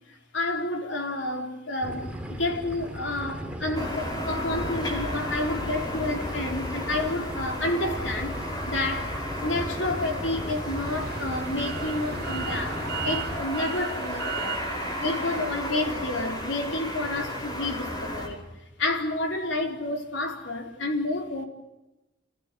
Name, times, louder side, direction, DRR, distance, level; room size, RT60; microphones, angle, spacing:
voice 1, 0.1-8.4 8.7-14.6 15.0-18.4 18.8-21.4, left 2 dB, 70° left, 4.2 m, -30 dB
sound 1, 1.8-13.4, equal, 5° right, 2.6 m, -37 dB
sound 2, 3.7-18.3, left 1 dB, 20° left, 4.9 m, -34 dB
sound 3, 10.5-15.7, right 6 dB, 55° right, 3.3 m, -37 dB
28.5 x 15.5 x 9.4 m
head